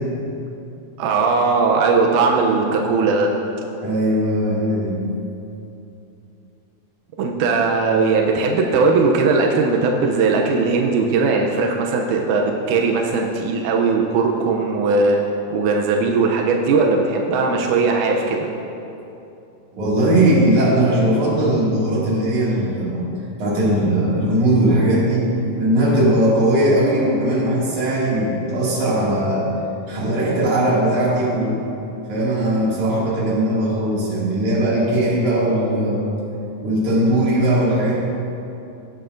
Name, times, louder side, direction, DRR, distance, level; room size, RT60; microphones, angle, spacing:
voice 1, 1.0-3.3 7.2-15.2 15.5-18.5, right 4 dB, 80° right, 1 dB, 1.8 m, -18 dB
voice 2, 3.8-5.0 19.7-23.1 23.4-25.3 25.6-29.5 29.9-31.6 32.1-36.1 36.6-38.0, right 1 dB, 55° right, -7 dB, 3.5 m, -19 dB
17.0 x 7.8 x 2.6 m, 2.8 s
omnidirectional pair, 4.3 m